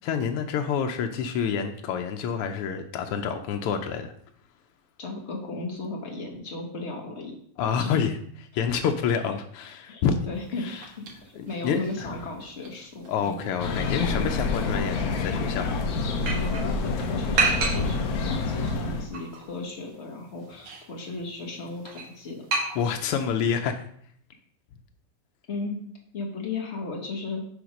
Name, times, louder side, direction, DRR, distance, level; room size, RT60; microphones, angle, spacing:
voice 1, 0.0-4.1 7.6-10.2 10.6-10.8 11.3-12.1 13.1-15.7 22.8-23.8, left 7 dB, 90° left, 5 dB, 1.6 m, -28 dB
voice 2, 5.0-7.3 7.8-7.9 9.9-13.5 16.3-22.5 25.5-25.8 26.1-27.4, left 3 dB, 40° left, 1 dB, 1.2 m, -35 dB
sound 1, 10.3-23.3, right 3 dB, 75° right, 2.2 m, -34 dB
sound 2, 13.6-19.1, left 3 dB, 65° left, 0.9 m, -27 dB
7.9 x 3.5 x 5.1 m, 0.62 s
omnidirectional pair, 2.4 m